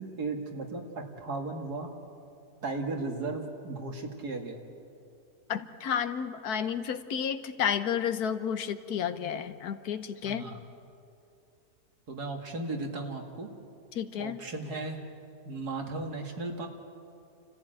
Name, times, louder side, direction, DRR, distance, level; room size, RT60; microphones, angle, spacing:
voice 1, 0.0-1.9 2.6-4.6 10.2-10.6 12.1-13.5 14.2-15.0 15.5-16.7, right 3 dB, 80° right, 3 dB, 2.6 m, -36 dB
voice 2, 5.5-10.4 13.9-14.4, left 8 dB, 75° left, 11 dB, 1.4 m, -31 dB
29.5 x 14.5 x 9.0 m, 2.6 s
omnidirectional pair, 1.7 m